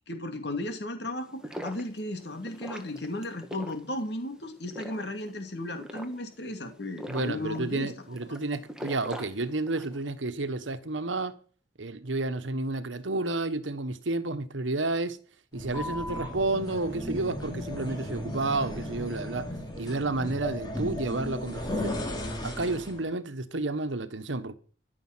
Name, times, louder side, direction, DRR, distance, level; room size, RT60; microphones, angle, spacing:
voice 1, 0.1-7.9 8.3-8.4, left 1 dB, 60° left, 2.6 m, -35 dB
sound 1, 1.2-10.0, equal, 5° right, 1.6 m, -43 dB
voice 2, 7.1-11.3 11.8-15.2 15.5-19.5 19.8-22.0 22.4-24.5, right 2 dB, 90° right, 1.3 m, -31 dB
sound 2, 15.5-23.0, left 1 dB, 25° left, 3.2 m, -35 dB
14.0 x 7.2 x 7.3 m
head